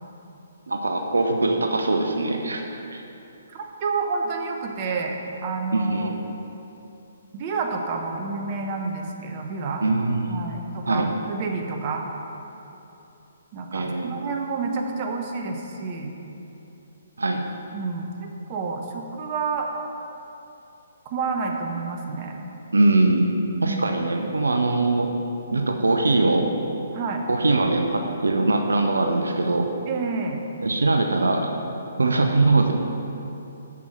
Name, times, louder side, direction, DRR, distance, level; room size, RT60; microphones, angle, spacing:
voice 1, 0.7-2.6 2.9-3.0 5.7-6.2 9.8-10.6 10.8-11.1 13.7-14.2 17.2-17.4 22.7-23.2 23.6-25.1 25.5-26.5 27.3-29.7 30.6-31.6 32.0-32.7, right 2 dB, 70° right, 3 dB, 0.7 m, -22 dB
voice 2, 3.5-5.2 5.4-6.1 7.3-9.8 10.3-12.0 13.5-16.1 17.7-19.7 21.1-22.4 23.6-23.8 26.9-27.3 29.9-30.4, right 4 dB, 35° right, 2 dB, 0.9 m, -29 dB
7.2 x 6.3 x 5.9 m, 2.9 s
figure-of-eight pair, 130°, 0 cm